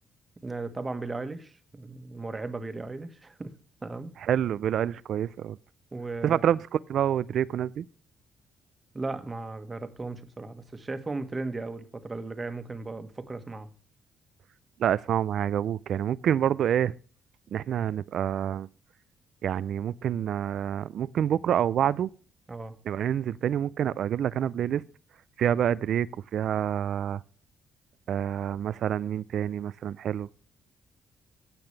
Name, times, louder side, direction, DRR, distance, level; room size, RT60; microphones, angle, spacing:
voice 1, 0.4-3.5 3.8-4.1 5.9-6.4 8.9-13.7 22.5-22.8, right 3 dB, 25° right, 1.4 m, -36 dB
voice 2, 4.2-5.6 6.2-7.8 14.8-16.9 17.5-18.7 19.4-22.1 22.9-24.8 25.4-27.2 28.1-30.3, right 10 dB, 65° right, 0.4 m, -27 dB
16.0 x 5.9 x 3.3 m
cardioid pair, 90°, 0 cm